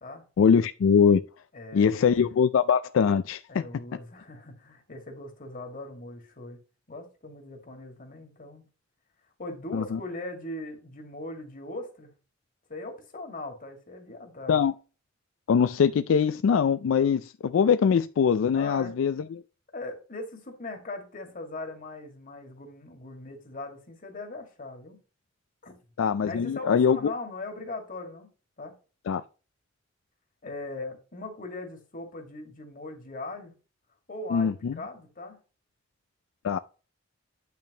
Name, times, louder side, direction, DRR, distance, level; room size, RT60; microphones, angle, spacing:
voice 1, 0.4-1.2 1.7-3.6 9.7-10.0 14.5-14.7 15.5-19.2 26.0-27.0 29.1-29.2 34.3-34.8 36.4-36.6, left 6 dB, 90° left, 0.4 m, -22 dB
voice 2, 1.5-2.1 3.5-6.6 6.9-8.7 9.4-12.1 12.7-14.6 18.5-19.1 19.7-25.0 25.6-25.8 26.3-28.3 28.6-28.7 30.4-33.5 34.1-35.4, left 2 dB, 45° left, 1.9 m, -40 dB
8.7 x 5.9 x 2.9 m
head